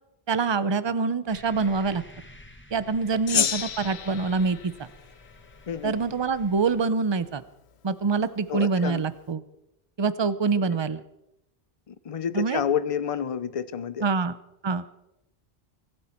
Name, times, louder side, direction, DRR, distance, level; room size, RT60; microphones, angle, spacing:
voice 1, 0.3-2.0 2.7-4.9 5.8-7.4 7.8-9.4 10.0-11.0 12.3-12.6 14.0-14.3 14.6-14.8, right 4 dB, 30° right, 14 dB, 0.7 m, -25 dB
sound 1, 1.3-6.8, left 1 dB, 10° left, 1.6 m, -50 dB
Gong, 3.3-5.9, left 8 dB, 85° left, 1.1 m, -31 dB
voice 2, 5.7-6.0 8.5-9.0 10.6-10.7 11.9-14.1, left 8 dB, 40° left, 15 dB, 0.7 m, -29 dB
24.0 x 12.5 x 4.4 m, 0.87 s
omnidirectional pair, 1.1 m